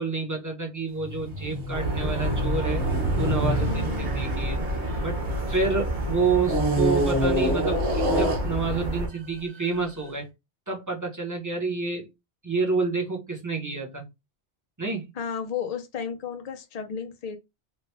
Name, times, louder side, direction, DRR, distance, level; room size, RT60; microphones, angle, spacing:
voice 1, 0.0-2.8 3.2-4.6 5.0-10.3 10.7-12.1 12.4-14.0 14.8-15.1, right 4 dB, 20° right, 0.9 m, -29 dB
sound 1, 1.0-5.7 6.4-9.0 9.6-9.8, equal, 75° right, 1.3 m, -27 dB
sound 2, 1.7-9.1, right 1 dB, 45° right, 1.1 m, -29 dB
voice 2, 3.3-4.1 15.1-17.4, left 7 dB, 45° left, 0.6 m, -33 dB
3.1 x 2.3 x 3.2 m
omnidirectional pair, 1.1 m